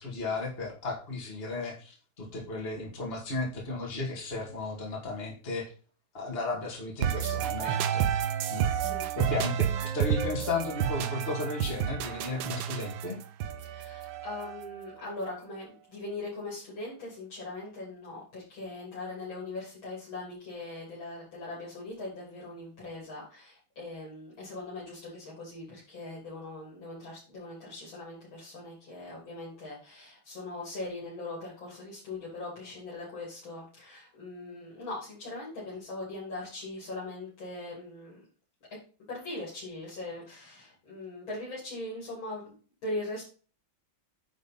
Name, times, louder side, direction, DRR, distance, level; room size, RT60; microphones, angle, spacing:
voice 1, 0.0-5.7 6.1-8.1 8.5-8.7 9.2-13.2, left 3 dB, 30° left, -2 dB, 2.3 m, -34 dB
sound 1, 7.0-14.8, right 9 dB, 80° right, 1.6 m, -30 dB
voice 2, 8.6-9.4 13.6-38.2 39.1-42.5 42.8-43.2, left 2 dB, 80° left, -6 dB, 4.3 m, -40 dB
9.8 x 4.0 x 5.4 m, 0.38 s
omnidirectional pair, 2.1 m